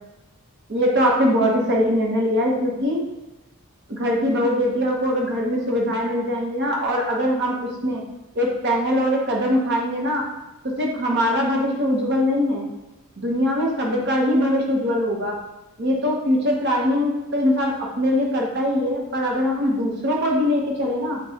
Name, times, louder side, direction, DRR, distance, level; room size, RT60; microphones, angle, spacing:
voice 1, 0.7-3.0 3.9-7.6 7.8-8.0 8.3-10.2 10.8-12.7 13.2-15.3 15.8-21.2, equal, 50° right, -1 dB, 0.8 m, -22 dB
6.5 x 2.3 x 2.8 m, 1.0 s
head